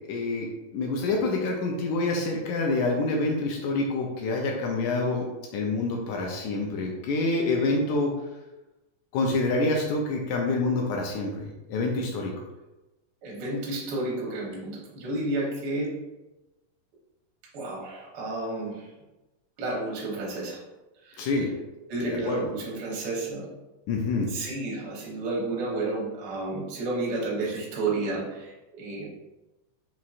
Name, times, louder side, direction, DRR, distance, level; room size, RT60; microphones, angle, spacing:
voice 1, 0.1-0.5 0.7-5.2 5.5-8.1 9.1-12.3 21.2-21.5 22.3-22.4 23.9-24.3, left 2 dB, 80° left, 0 dB, 1.8 m, -27 dB
voice 2, 13.2-15.9 17.5-18.9 19.6-20.6 21.0-21.3 21.9-23.5 24.3-29.1, right 2 dB, 80° right, -4 dB, 0.9 m, -31 dB
5.5 x 3.0 x 2.5 m, 1.0 s
omnidirectional pair, 3.8 m